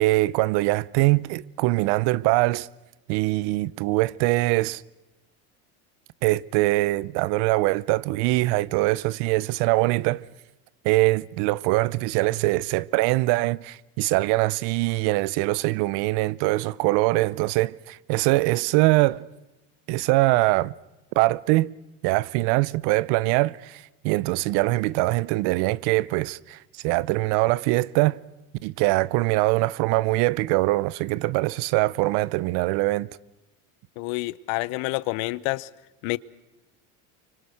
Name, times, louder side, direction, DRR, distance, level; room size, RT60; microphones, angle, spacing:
voice 1, 0.0-2.7 3.1-4.8 6.2-10.3 10.8-19.2 19.9-20.7 21.2-21.7 22.0-28.2 28.6-33.1, right 20 dB, 70° right, 0.7 m, -23 dB
voice 2, 34.0-35.7 36.0-36.2, left 22 dB, 75° left, 0.9 m, -28 dB
25.5 x 25.0 x 6.4 m
supercardioid pair, 105°, 42 cm